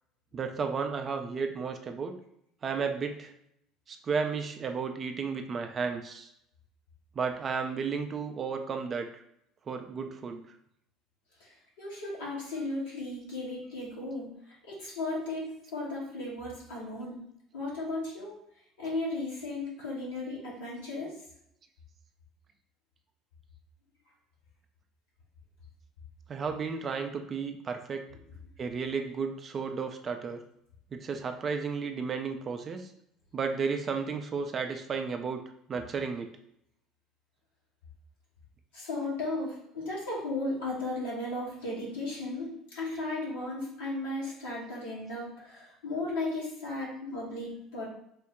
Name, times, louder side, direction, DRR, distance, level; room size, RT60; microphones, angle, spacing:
voice 1, 0.3-2.2 2.6-3.3 3.9-6.3 7.2-9.2 9.7-10.4 26.3-28.1 28.6-30.4 30.9-32.9 33.3-35.4 35.7-36.3, right 5 dB, 35° right, 6 dB, 0.4 m, -33 dB
voice 2, 11.4-17.2 17.5-18.3 18.8-21.2 38.7-47.8, left 2 dB, 70° left, -6 dB, 1.5 m, -35 dB
3.7 x 2.1 x 3.6 m, 0.75 s
figure-of-eight pair, 60°, 0 cm